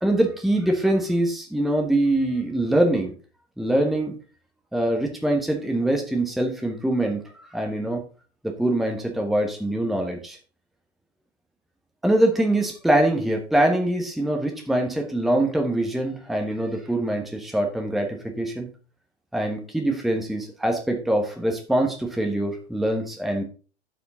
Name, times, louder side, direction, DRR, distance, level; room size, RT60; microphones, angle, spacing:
voice 1, 0.0-3.1 3.6-4.1 4.7-7.2 7.5-8.0 8.4-10.4 12.0-18.7 19.3-23.4, right 1 dB, ahead, 2 dB, 1.1 m, -23 dB
12.0 x 5.0 x 3.8 m, 0.38 s
figure-of-eight pair, 105°, 33 cm